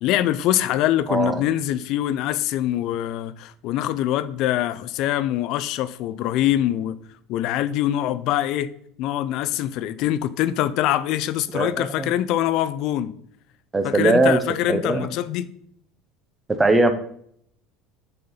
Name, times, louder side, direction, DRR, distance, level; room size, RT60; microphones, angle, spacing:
voice 1, 0.0-7.0 7.3-8.7 9.0-13.1 13.8-15.5, left 12 dB, 55° left, 0.4 m, -24 dB
voice 2, 1.1-1.4 11.5-12.1 13.7-14.4 14.7-15.1 16.5-16.9, right 2 dB, 10° right, 0.6 m, -20 dB
6.5 x 4.3 x 3.9 m
cardioid pair, 150°, 0 cm